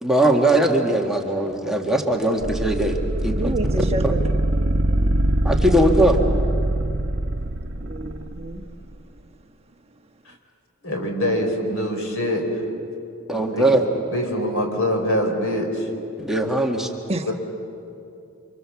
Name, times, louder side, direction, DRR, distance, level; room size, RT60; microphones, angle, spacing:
voice 1, 0.0-3.0 3.2-3.5 5.4-6.2 13.3-13.8 16.2-16.9, right 1 dB, ahead, 0 dB, 1.7 m, -20 dB
sound 1, 2.4-8.6, right 1 dB, 55° right, 1.3 m, -23 dB
voice 2, 3.3-4.2 7.8-8.6 17.1-17.3, right 2 dB, 30° right, 4 dB, 1.4 m, -29 dB
voice 3, 10.8-12.6 13.5-13.6 14.1-15.9 17.3-17.4, left 1 dB, 70° left, 3 dB, 4.4 m, -24 dB
28.5 x 26.5 x 7.1 m, 2.6 s
head